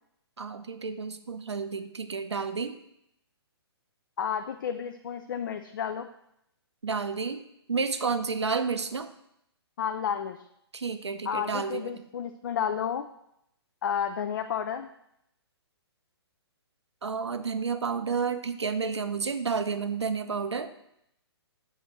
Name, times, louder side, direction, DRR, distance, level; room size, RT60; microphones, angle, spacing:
voice 1, 0.4-2.8 6.8-7.4 7.7-9.1 10.7-12.0 17.0-20.7, right 5 dB, 80° right, 9 dB, 0.6 m, -31 dB
voice 2, 4.2-6.1 9.8-10.4 11.3-13.1 13.8-14.9, left 8 dB, 50° left, 8 dB, 0.4 m, -31 dB
6.7 x 3.1 x 5.7 m, 0.77 s
figure-of-eight pair, 125°, 14 cm